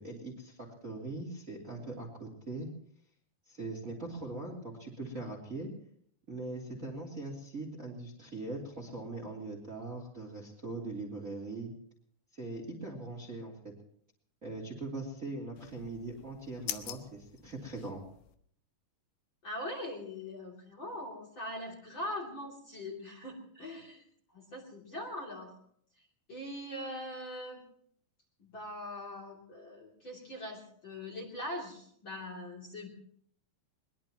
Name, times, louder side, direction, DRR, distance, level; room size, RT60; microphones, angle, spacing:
voice 1, 0.0-2.7 3.5-5.7 6.3-11.7 12.3-13.7 14.4-18.0, right 2 dB, 20° right, 0 dB, 2.8 m, -41 dB
sound 1, 15.6-18.4, left 12 dB, 85° left, 3.2 m, -45 dB
voice 2, 19.4-24.0 24.3-25.5 26.3-27.6 28.4-32.9, left 1 dB, 30° left, -1 dB, 3.2 m, -42 dB
22.0 x 21.0 x 3.0 m, 0.63 s
omnidirectional pair, 4.8 m